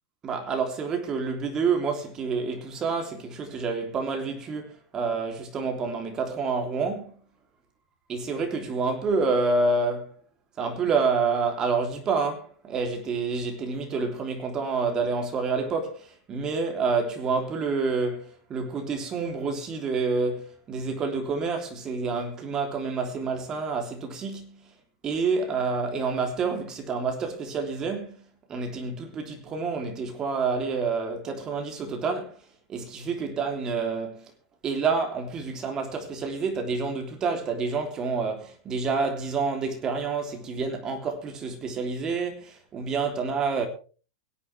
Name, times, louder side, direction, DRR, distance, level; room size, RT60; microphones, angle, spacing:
voice 1, 0.2-7.2 8.1-10.1 10.6-24.7 25.0-32.4 32.7-34.2 34.6-43.7, right 4 dB, 25° right, 3.2 m, -28 dB
24.0 x 8.5 x 3.4 m
supercardioid pair, 145°, 3 cm